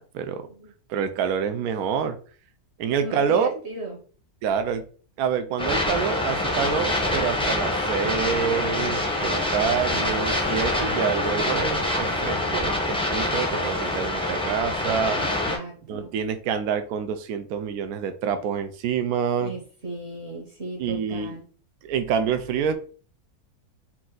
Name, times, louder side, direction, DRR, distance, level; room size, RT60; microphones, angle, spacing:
voice 1, 0.1-0.5 0.9-2.2 2.8-3.5 4.4-4.8 5.2-15.2 15.8-19.5 20.8-21.4 21.8-22.7, right 7 dB, 75° right, 9 dB, 1.0 m, -27 dB
voice 2, 3.0-4.0 15.2-16.1 19.4-21.4, right 2 dB, 50° right, -1 dB, 1.2 m, -35 dB
sound 1, 5.6-15.6, left 1 dB, 5° left, 0.5 m, -25 dB
4.4 x 2.5 x 3.7 m, 0.42 s
omnidirectional pair, 1.6 m